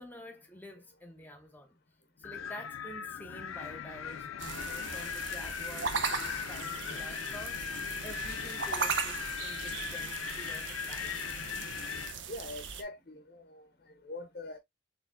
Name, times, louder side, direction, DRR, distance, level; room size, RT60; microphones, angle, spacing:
voice 1, 0.0-1.8 2.2-11.4, equal, 10° left, 0.8 m, -49 dB
Wind, 2.2-12.2, left 7 dB, 90° left, 0.5 m, -39 dB
sound 1, 4.4-12.8, right 5 dB, 65° right, 0.6 m, -38 dB
sound 2, 5.6-11.6, left 1 dB, 45° right, 1.9 m, -60 dB
voice 2, 12.3-13.6 14.0-14.6, left 2 dB, 45° left, 0.6 m, -43 dB
4.3 x 3.3 x 2.5 m
head